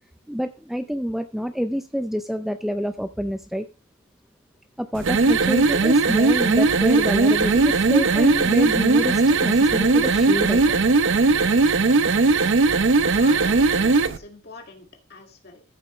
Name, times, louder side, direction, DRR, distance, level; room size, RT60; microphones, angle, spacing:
voice 1, 0.3-3.7 4.8-10.8, equal, ahead, 0.4 m, -27 dB
sound 1, 5.0-14.2, right 3 dB, 65° right, 0.6 m, -18 dB
voice 2, 12.1-12.5 13.1-15.6, left 3 dB, 50° left, 2.0 m, -43 dB
14.0 x 6.9 x 3.1 m
head